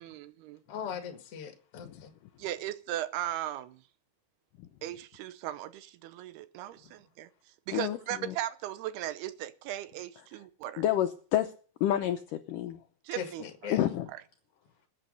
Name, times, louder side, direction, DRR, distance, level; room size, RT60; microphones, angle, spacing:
voice 1, 0.0-0.6 2.4-3.8 4.8-7.3 7.7-10.8 13.1-13.8, right 13 dB, 80° right, 2.8 m, -37 dB
voice 2, 0.7-2.1 13.2-13.8, left 7 dB, 45° left, 2.4 m, -39 dB
voice 3, 7.7-8.4 10.3-10.4 10.8-11.5 11.8-12.8 13.7-14.1, left 12 dB, 75° left, 2.0 m, -29 dB
21.0 x 8.5 x 5.4 m
omnidirectional pair, 4.6 m